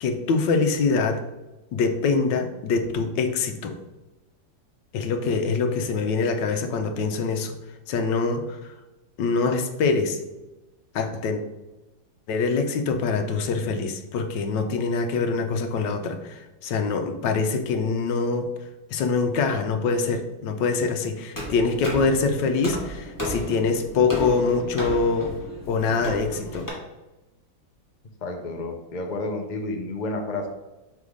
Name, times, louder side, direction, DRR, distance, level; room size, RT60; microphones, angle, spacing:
voice 1, 0.0-1.2 1.7-3.7 4.9-7.5 7.9-8.8 9.2-10.2 10.9-11.4 12.3-18.5 18.9-25.3 25.7-26.7, left 4 dB, 75° left, 6 dB, 1.3 m, -24 dB
sound 1, 21.3-26.7, equal, 10° left, 1.2 m, -33 dB
voice 2, 28.2-30.5, left 2 dB, 50° left, 3 dB, 0.5 m, -30 dB
5.5 x 4.1 x 4.8 m, 1.0 s
omnidirectional pair, 2.0 m